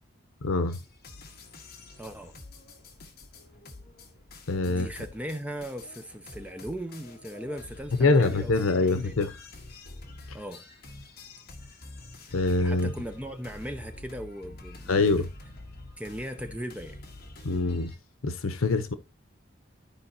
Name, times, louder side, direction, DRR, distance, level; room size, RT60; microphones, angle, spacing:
voice 1, 0.4-0.8 4.5-4.9 8.0-9.4 12.3-12.9 14.9-15.2 17.4-17.9 18.2-18.9, left 3 dB, 85° left, 0.8 m, -24 dB
sound 1, 0.7-17.9, left 2 dB, 45° left, 1.4 m, -47 dB
voice 2, 2.0-2.3 4.6-9.2 10.3-10.6 12.3-15.3 16.0-17.0, equal, 5° right, 0.7 m, -38 dB
13.5 x 4.7 x 2.8 m
head